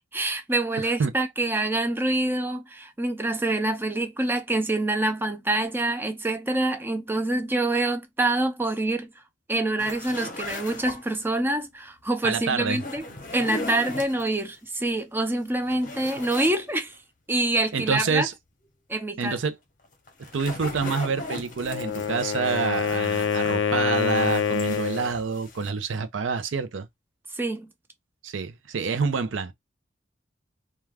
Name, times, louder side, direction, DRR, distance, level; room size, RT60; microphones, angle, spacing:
voice 1, 0.1-9.1 9.5-13.0 13.3-16.9 17.3-18.3 18.9-19.4 27.4-27.7, right 2 dB, 10° right, 0.4 m, -26 dB
sound 1, 9.8-11.3 12.7-14.4 15.0-15.1 15.5-16.6 16.9-17.0 19.8-23.7 23.9-25.7, left 2 dB, 45° left, 0.7 m, -38 dB
voice 2, 12.2-12.8 17.7-18.3 19.2-19.6 20.3-26.9 28.2-29.5, right 5 dB, 90° right, 0.5 m, -27 dB
Wind instrument woodwind instrument, 21.6-25.1, left 7 dB, 80° left, 0.4 m, -26 dB
2.4 x 2.2 x 3.2 m
head